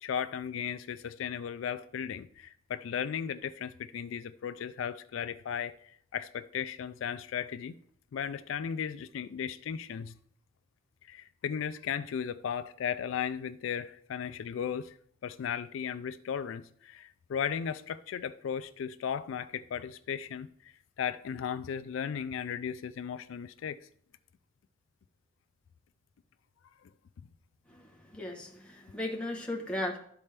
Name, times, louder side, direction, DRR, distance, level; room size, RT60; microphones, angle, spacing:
voice 1, 0.0-7.8 8.1-10.2 11.0-14.9 15.2-23.8, left 8 dB, 75° left, 0.3 m, -36 dB
voice 2, 27.7-30.0, left 1 dB, 5° left, 1.1 m, -36 dB
12.5 x 4.2 x 3.3 m
head